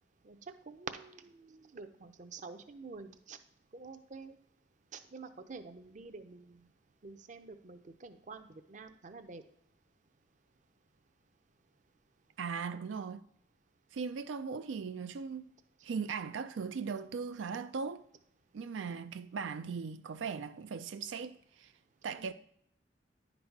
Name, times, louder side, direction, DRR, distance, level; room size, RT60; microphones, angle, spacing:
voice 1, 0.7-3.4 3.7-4.3 4.9-6.6 7.0-9.4 22.2-22.3, right 4 dB, 40° right, 0.6 m, -48 dB
voice 2, 12.4-13.2 13.9-15.5 15.8-18.0 18.5-21.7 22.0-22.3, right 5 dB, 85° right, 0.4 m, -38 dB
10.0 x 4.0 x 4.6 m
head